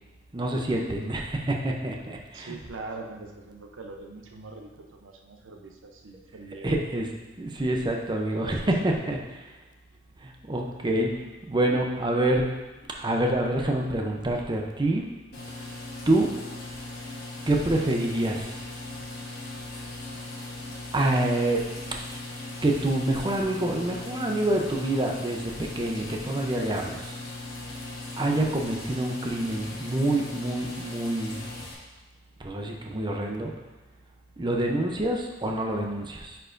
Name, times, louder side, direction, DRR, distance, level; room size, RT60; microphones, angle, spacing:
voice 1, 0.3-2.6 6.6-7.1 7.4-8.6 8.8-9.2 10.2-12.5 12.9-15.1 16.1-16.3 17.5-18.5 20.9-21.6 22.6-27.1 28.2-31.4 32.4-33.5 34.4-36.4, right 1 dB, 25° right, 1 dB, 0.6 m, -27 dB
voice 2, 2.3-6.8 8.3-9.0, right 3 dB, 90° right, 3 dB, 0.7 m, -42 dB
sound 1, 15.3-31.7, left 2 dB, 55° left, 1.5 m, -38 dB
9.5 x 4.5 x 2.6 m, 1.2 s
head